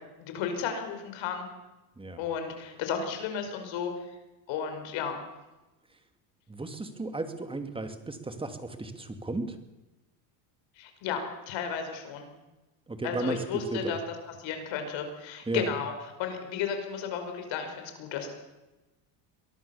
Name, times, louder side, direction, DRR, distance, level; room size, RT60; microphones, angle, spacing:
voice 1, 0.2-1.5 2.2-3.9 4.5-5.2 10.8-12.3 13.0-14.0 14.3-15.9 16.2-18.3, left 7 dB, 65° left, 6 dB, 5.4 m, -33 dB
voice 2, 6.5-9.6 12.9-13.9 15.5-15.7, right 2 dB, 10° right, 7 dB, 2.5 m, -34 dB
23.5 x 19.0 x 7.2 m, 1.1 s
cardioid pair, 125°, 48 cm